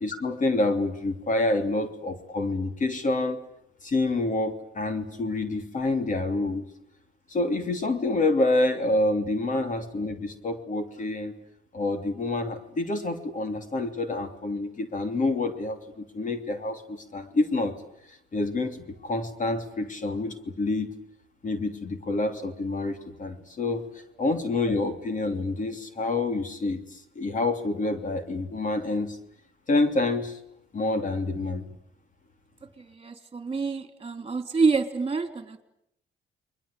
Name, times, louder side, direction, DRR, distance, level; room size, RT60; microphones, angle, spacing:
voice 1, 0.0-3.4 3.8-6.7 7.3-11.3 11.7-17.7 18.3-20.9 21.4-29.2 29.7-30.4 30.7-31.6, left 2 dB, 40° left, 7 dB, 3.1 m, -27 dB
voice 2, 32.8-35.6, right 4 dB, 25° right, 8 dB, 3.5 m, -27 dB
29.5 x 22.0 x 8.6 m, 0.78 s
cardioid pair, 90°, 20 cm